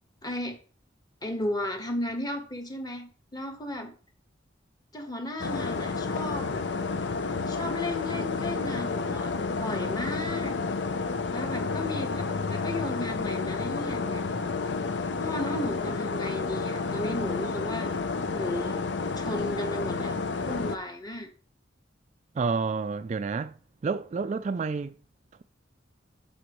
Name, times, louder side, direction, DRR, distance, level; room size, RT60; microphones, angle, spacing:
voice 1, 0.2-0.6 1.2-3.9 4.9-6.6 7.5-10.5 11.3-14.2 15.2-17.9 18.3-18.8 19.2-21.3, left 1 dB, 20° left, 1.3 m, -34 dB
sound 1, 5.4-20.8, left 4 dB, 65° left, 0.7 m, -30 dB
voice 2, 22.4-23.5 23.8-24.9, right 4 dB, 40° right, 0.3 m, -29 dB
9.8 x 7.0 x 3.1 m
head